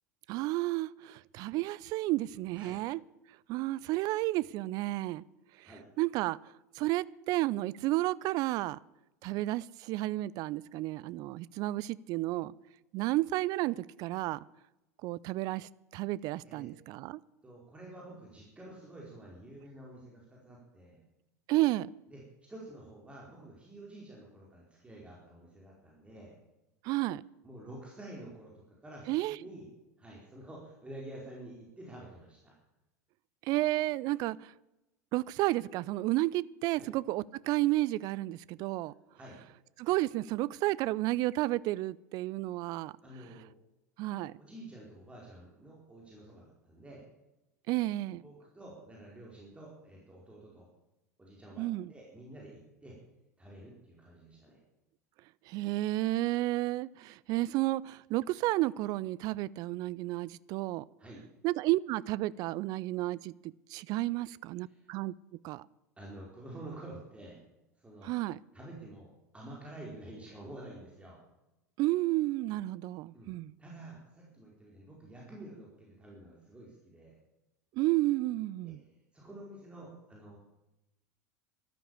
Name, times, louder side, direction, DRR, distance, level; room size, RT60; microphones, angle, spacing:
voice 1, 0.3-3.0 3.5-5.2 5.6-5.7 6.0-6.4 6.8-8.8 9.2-12.5 12.9-14.5 15.0-17.2 21.5-21.9 26.8-27.2 29.1-29.4 33.4-34.5 35.1-38.9 39.8-42.9 44.0-44.4 47.7-48.2 51.6-51.9 55.5-60.9 61.4-63.3 63.7-65.1 65.4-65.6 68.0-68.4 71.8-73.5 77.8-78.8, right 18 dB, 45° right, 0.5 m, -31 dB
voice 2, 17.4-21.0 22.1-26.3 27.4-29.7 30.0-32.5 36.8-36.9 39.1-39.4 43.0-43.5 44.4-47.0 48.2-50.7 51.2-53.0 53.4-54.6 61.0-61.2 64.6-64.9 66.0-67.4 67.8-68.1 68.5-71.2 73.1-73.3 73.6-77.2 78.6-80.4, right 1 dB, 10° right, 4.7 m, -49 dB
13.5 x 13.0 x 7.2 m
figure-of-eight pair, 80°, 9 cm